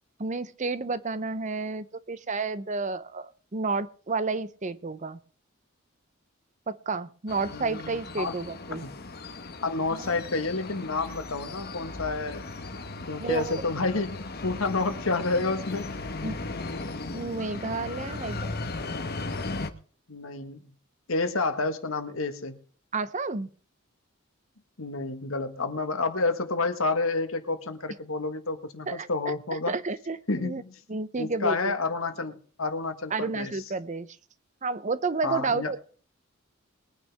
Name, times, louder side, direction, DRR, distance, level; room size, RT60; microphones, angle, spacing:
voice 1, 0.2-5.2 6.7-8.8 9.9-10.0 13.2-13.6 16.2-16.4 17.1-18.5 22.9-23.5 28.9-29.3 29.7-30.6 30.9-31.7 33.1-34.1 34.6-35.8, right 3 dB, 35° right, 15 dB, 0.7 m, -31 dB
sound 1, 7.3-19.7, left 3 dB, 50° left, 1.2 m, -37 dB
voice 2, 7.5-8.3 8.7-8.9 9.6-12.5 13.1-16.0 20.1-20.6 21.1-22.6 24.8-29.7 30.3-30.8 31.2-33.6 35.2-35.7, left 3 dB, 75° left, 8 dB, 1.5 m, -29 dB
21.5 x 9.5 x 3.5 m, 0.43 s
head